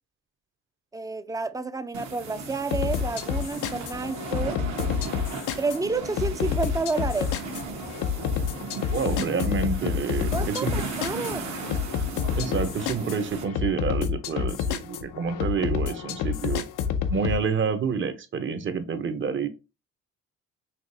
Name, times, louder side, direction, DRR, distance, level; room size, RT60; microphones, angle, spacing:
voice 1, 0.9-4.6 5.6-7.3 10.3-11.5, right 3 dB, 10° right, 0.4 m, -30 dB
sound 1, 1.9-13.4, right 3 dB, 70° right, 1.3 m, -36 dB
sound 2, 2.7-17.4, left 7 dB, 90° left, 0.6 m, -29 dB
voice 2, 8.9-10.8 12.3-16.6 17.1-19.5, right 6 dB, 40° right, 0.8 m, -28 dB
5.8 x 2.9 x 2.7 m
cardioid pair, 90°, 30 cm